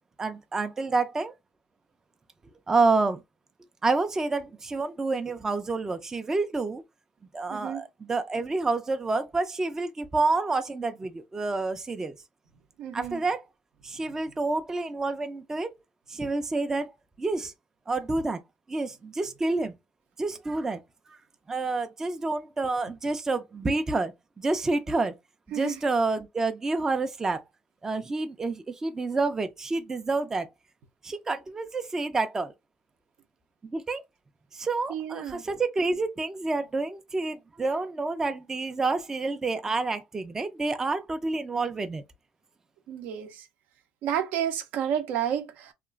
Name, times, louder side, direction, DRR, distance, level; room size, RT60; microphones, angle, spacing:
voice 1, 0.2-1.3 2.7-3.2 3.8-6.8 7.3-12.1 12.9-13.4 13.8-15.7 16.1-16.9 17.2-17.5 17.9-18.4 18.7-19.7 20.2-20.8 21.1-21.2 21.5-25.1 25.5-27.5 27.8-30.5 31.0-32.5 33.6-34.0 34.5-42.0, right 3 dB, 15° right, 0.3 m, -28 dB
voice 2, 7.5-7.8 12.8-13.2 25.5-25.8 34.9-35.4 42.9-43.5 44.0-45.7, right 9 dB, 70° right, 0.5 m, -31 dB
2.9 x 2.4 x 2.3 m
cardioid pair, 120°, 3 cm